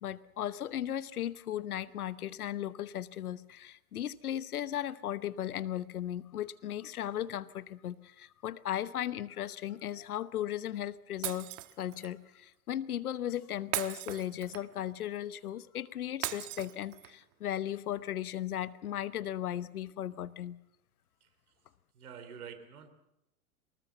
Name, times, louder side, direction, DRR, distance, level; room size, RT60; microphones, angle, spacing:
voice 1, 0.0-11.5 11.8-20.6, left 11 dB, 80° left, 16 dB, 1.1 m, -36 dB
Shatter, 11.2-12.1 13.7-14.8 16.2-17.2, right 17 dB, 60° right, 1.4 m, -38 dB
voice 2, 21.2-21.5 21.9-22.9, right 7 dB, 75° right, 10 dB, 3.4 m, -48 dB
24.0 x 20.0 x 7.1 m, 0.86 s
hypercardioid pair, 95°, 44 cm